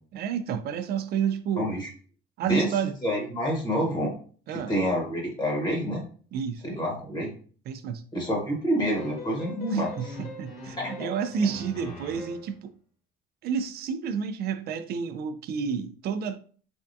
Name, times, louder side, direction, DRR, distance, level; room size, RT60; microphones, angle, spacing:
voice 1, 0.1-1.7 2.4-2.9 4.5-4.7 6.3-6.6 7.7-8.0 9.7-12.7 13.4-16.4, right 7 dB, 60° right, 0.4 m, -30 dB
voice 2, 1.6-1.9 2.4-2.7 3.0-4.1 4.5-6.0 6.6-7.3 8.1-10.2 10.8-11.1, equal, 25° left, 1.1 m, -28 dB
sound 1, 9.0-12.6, left 2 dB, 50° left, 1.3 m, -41 dB
3.4 x 2.3 x 2.6 m
cardioid pair, 105°, 19 cm